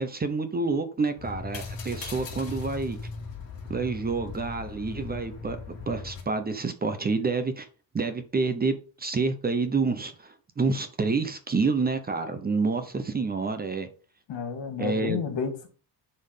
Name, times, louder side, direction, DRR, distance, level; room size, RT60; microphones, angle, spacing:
voice 1, 0.0-3.0 3.7-5.6 5.9-7.7 7.9-13.9 14.8-15.2, right 4 dB, 20° right, 9 dB, 0.9 m, -28 dB
sound 1, 1.2-6.2, left 4 dB, 50° left, 3.0 m, -38 dB
voice 2, 14.3-15.7, left 5 dB, 75° left, 6 dB, 2.5 m, -31 dB
10.0 x 4.5 x 5.6 m, 0.38 s
cardioid pair, 170°, 44 cm